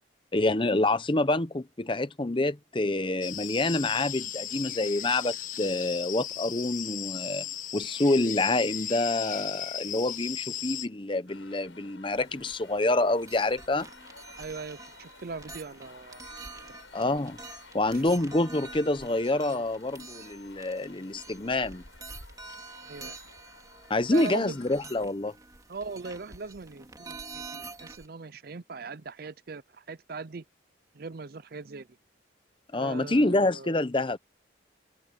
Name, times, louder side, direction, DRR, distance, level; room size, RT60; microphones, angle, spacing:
voice 1, 0.3-7.4 7.7-13.9 16.9-17.4 17.7-21.8 23.9-25.3 32.7-34.2, left 2 dB, 25° left, 0.8 m, -27 dB
sound 1, 3.2-10.9, left 10 dB, 45° left, 1.4 m, -36 dB
sound 2, 11.3-25.0, left 3 dB, 85° left, 7.7 m, -53 dB
sound 3, 12.2-28.1, right 3 dB, 20° right, 3.6 m, -47 dB
voice 2, 14.4-16.2 17.9-18.0 22.8-23.2 24.1-24.6 25.7-30.4 30.9-31.9 32.7-33.8, right 4 dB, 50° right, 0.6 m, -40 dB
head